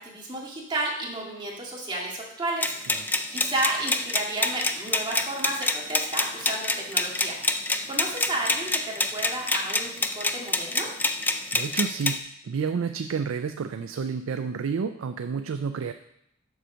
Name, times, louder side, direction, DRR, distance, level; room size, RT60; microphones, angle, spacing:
voice 1, 0.0-3.0 3.3-7.4 7.9-10.9, right 2 dB, 25° right, -3 dB, 1.9 m, -32 dB
sound 1, 2.6-12.2, left 2 dB, 10° left, 0.4 m, -27 dB
voice 2, 11.5-15.9, right 5 dB, 75° right, 8 dB, 0.4 m, -30 dB
7.1 x 6.2 x 5.1 m, 0.76 s
head